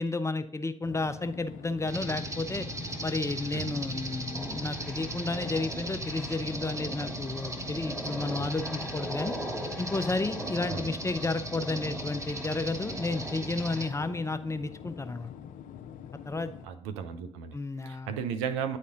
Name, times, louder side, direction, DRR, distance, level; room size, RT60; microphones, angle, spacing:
voice 1, 0.0-2.7 3.0-9.3 9.8-15.3 16.3-16.6 17.5-18.1, left 3 dB, 20° left, 11 dB, 0.6 m, -32 dB
sound 1, 0.8-16.7, left 9 dB, 65° left, 0.6 m, -45 dB
sound 2, 1.9-13.9, right 2 dB, 20° right, 1.2 m, -38 dB
sound 3, 4.3-14.3, equal, 5° right, 1.8 m, -41 dB
voice 2, 16.6-17.6 17.8-18.8, right 7 dB, 80° right, 9 dB, 0.6 m, -34 dB
9.4 x 4.2 x 3.8 m, 0.67 s
hypercardioid pair, 45°, 15 cm